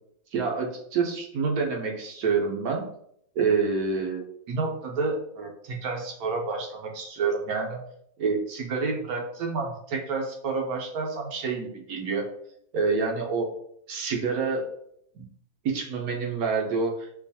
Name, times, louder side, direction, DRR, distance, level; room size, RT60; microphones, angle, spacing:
voice 1, 0.3-2.9 3.3-7.8 8.2-12.2 12.7-13.5 13.9-14.7 15.1-15.2 15.6-17.1, right 4 dB, 70° right, 2 dB, 1.2 m, -28 dB
4.5 x 2.4 x 2.7 m, 0.69 s
omnidirectional pair, 1.6 m